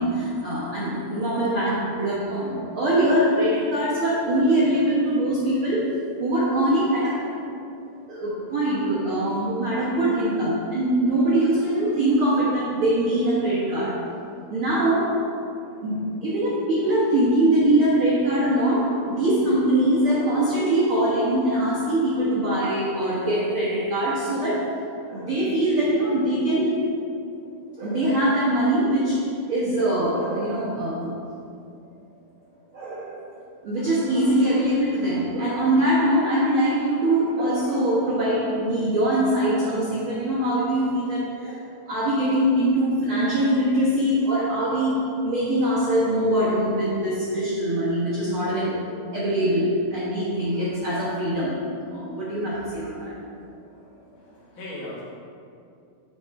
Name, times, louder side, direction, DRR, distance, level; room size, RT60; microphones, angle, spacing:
voice 1, 0.0-5.9 6.2-7.3 8.1-14.0 14.5-15.1 15.8-24.7 25.1-26.8 27.8-29.2 29.5-31.1 32.7-33.2 33.6-51.6 51.9-53.1, right 1 dB, 85° right, -9 dB, 1.1 m, -23 dB
voice 2, 54.2-55.0, left 1 dB, 45° left, -8 dB, 1.8 m, -37 dB
6.9 x 4.6 x 5.2 m, 2.5 s
omnidirectional pair, 4.4 m